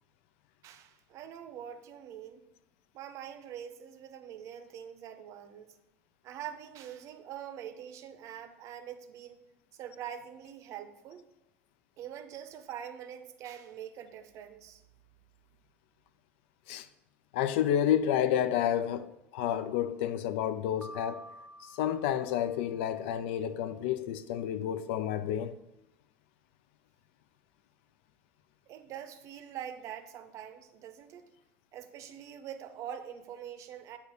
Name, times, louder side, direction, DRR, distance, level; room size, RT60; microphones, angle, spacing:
voice 1, 0.6-2.4 2.9-5.7 6.2-9.4 9.7-11.2 12.0-14.8 28.7-31.2 31.7-34.0, right 9 dB, 50° right, 0.6 m, -44 dB
voice 2, 17.3-21.2 21.8-25.5, left 10 dB, 65° left, 0.3 m, -30 dB
Piano, 20.8-23.0, equal, 5° right, 0.5 m, -50 dB
7.7 x 2.8 x 4.7 m
figure-of-eight pair, 65°, 7 cm